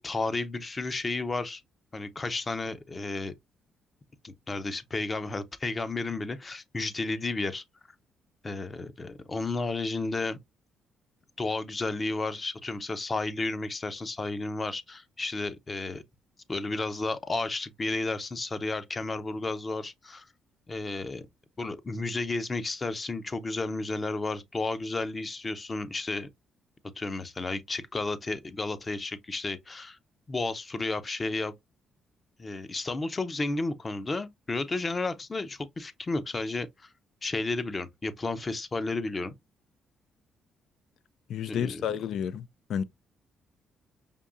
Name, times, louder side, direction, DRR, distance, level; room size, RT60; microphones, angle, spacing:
voice 1, 0.0-1.6 1.9-3.3 4.2-7.6 8.4-10.4 11.4-16.0 16.5-20.3 20.7-21.3 21.6-26.3 27.0-30.0 30.3-31.5 32.4-36.9 37.2-39.3 41.5-41.9, left 3 dB, 30° left, 0.6 m, -32 dB
voice 2, 41.3-42.8, left 8 dB, 75° left, 0.3 m, -31 dB
5.2 x 2.6 x 2.4 m
cardioid pair, 90°, 0 cm